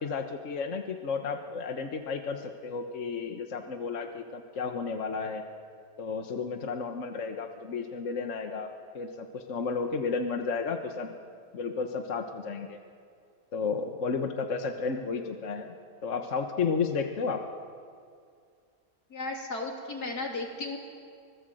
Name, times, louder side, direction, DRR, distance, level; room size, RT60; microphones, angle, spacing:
voice 1, 0.0-5.4 6.0-11.1 11.5-12.8 13.5-15.7 16.0-17.4, left 5 dB, 55° left, 5 dB, 1.5 m, -32 dB
voice 2, 19.1-20.8, left 2 dB, 80° left, 1 dB, 3.6 m, -35 dB
25.5 x 20.0 x 7.8 m, 2.2 s
omnidirectional pair, 1.6 m